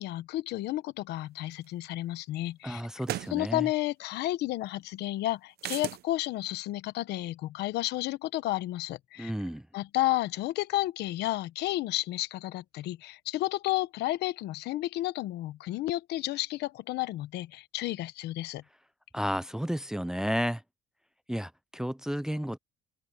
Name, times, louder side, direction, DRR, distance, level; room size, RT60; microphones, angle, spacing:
voice 1, 0.0-2.8 3.3-9.3 9.7-18.6, left 16 dB, 80° left, 1.1 m, -32 dB
sound 1, 1.6-1.7 3.0-3.4 5.6-6.0, right 14 dB, 70° right, 0.8 m, -35 dB
voice 2, 2.6-3.7 9.2-9.7 19.1-20.6 21.3-22.6, equal, 5° right, 0.5 m, -32 dB
open air
cardioid pair, 110°, 17 cm